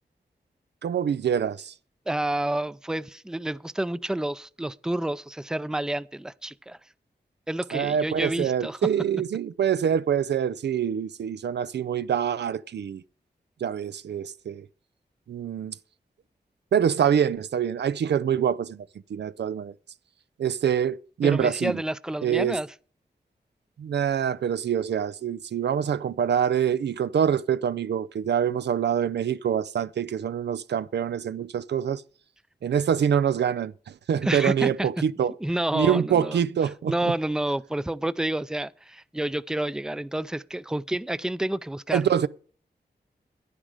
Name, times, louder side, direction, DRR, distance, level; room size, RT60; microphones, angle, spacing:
voice 1, 0.8-1.7 7.7-13.0 13.6-14.7 15.3-15.7 16.7-19.7 20.4-21.8 22.2-22.6 23.8-32.0 32.6-35.3 35.7-37.1 41.9-42.3, right 8 dB, 80° right, 0.4 m, -25 dB
voice 2, 2.1-6.8 7.5-8.8 21.2-22.7 34.2-34.9 35.4-36.4 36.9-42.3, right 1 dB, 5° right, 0.5 m, -29 dB
10.0 x 10.0 x 4.8 m
cardioid pair, 50°, 18 cm